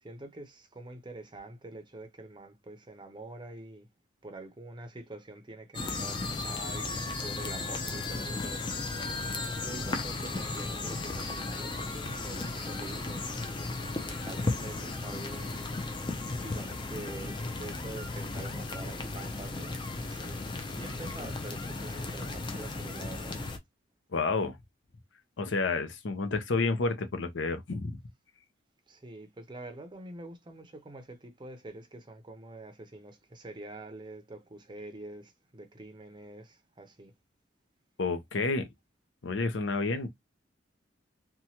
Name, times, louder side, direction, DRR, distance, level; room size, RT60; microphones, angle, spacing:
voice 1, 0.0-3.9 4.2-8.7 9.6-15.8 16.4-19.8 20.0-23.4 28.9-37.1, right 2 dB, 25° right, 0.5 m, -46 dB
sound 1, 5.7-23.6, left 3 dB, 25° left, 0.5 m, -35 dB
voice 2, 24.1-24.6 25.4-27.9 38.0-38.7 39.2-40.1, left 3 dB, 75° left, 0.6 m, -30 dB
2.9 x 2.2 x 2.8 m
head